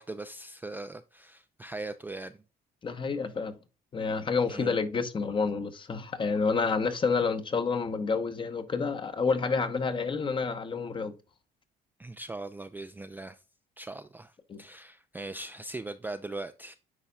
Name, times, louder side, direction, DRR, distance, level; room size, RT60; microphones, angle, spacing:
voice 1, 0.0-2.4 4.5-4.8 12.0-13.4 13.8-14.3 14.6-16.7, right 2 dB, 10° right, 0.3 m, -40 dB
voice 2, 2.8-3.5 3.9-11.1 14.5-14.6, left 4 dB, 30° left, 0.9 m, -29 dB
9.7 x 4.1 x 2.3 m
cardioid pair, 110°, 17 cm